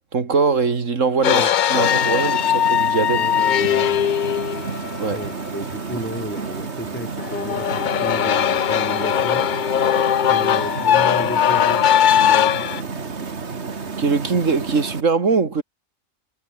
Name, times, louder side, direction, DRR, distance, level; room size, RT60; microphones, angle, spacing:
voice 1, 0.1-3.3 5.0-5.2 14.0-15.6, right 4 dB, 85° right, 2.5 m, -21 dB
sound 1, 1.2-5.3 7.2-12.8, left 9 dB, 55° left, 0.6 m, -19 dB
sound 2, 1.7-15.0, right 4 dB, 60° right, 2.2 m, -31 dB
voice 2, 3.1-4.1 5.1-9.5 10.3-11.9 12.2-12.8, equal, 10° left, 3.9 m, -33 dB
omnidirectional pair, 1.3 m